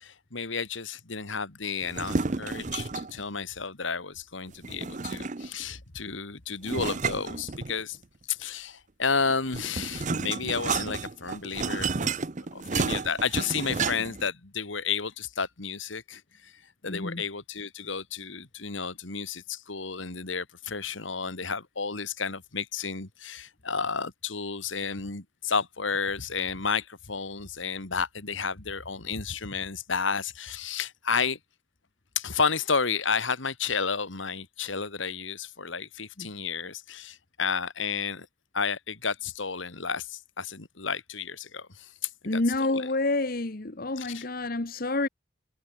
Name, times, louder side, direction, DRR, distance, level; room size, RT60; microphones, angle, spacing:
voice 1, 0.0-8.0 8.3-12.1 12.5-16.5 16.8-31.4 32.2-38.3 38.5-42.9 44.0-44.3, left 5 dB, 80° left, 2.4 m, -32 dB
sound 1, 1.8-3.2 4.6-5.6 6.6-8.0 9.2-14.3, right 4 dB, 40° right, 0.7 m, -31 dB
voice 2, 16.9-17.2 36.2-36.3 42.2-45.1, left 2 dB, 50° left, 1.2 m, -28 dB
head